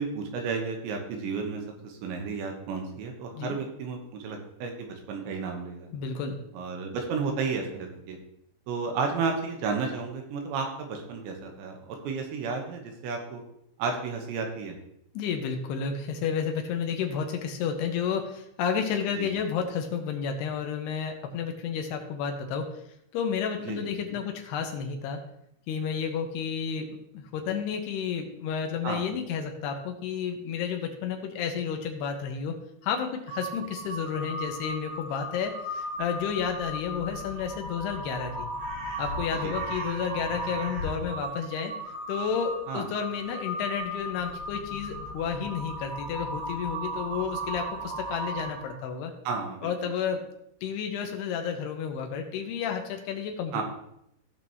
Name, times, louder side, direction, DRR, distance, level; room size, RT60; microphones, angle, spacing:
voice 1, 0.0-5.9 6.5-8.2 8.7-13.4 13.8-14.8 19.2-19.3 23.7-24.2 28.8-29.0 39.4-39.5 42.7-42.8 49.2-49.7 53.5-53.6, right 5 dB, 75° right, 3 dB, 3.3 m, -32 dB
voice 2, 5.9-6.4 15.1-22.7 23.1-25.2 25.7-32.6 32.8-38.5 39.0-41.7 42.1-49.1 49.6-50.3 50.6-53.6, left 7 dB, 75° left, 4 dB, 2.8 m, -31 dB
Crow, 33.3-48.8, right 1 dB, 40° right, 2.8 m, -36 dB
16.5 x 6.0 x 3.0 m, 0.77 s
omnidirectional pair, 5.4 m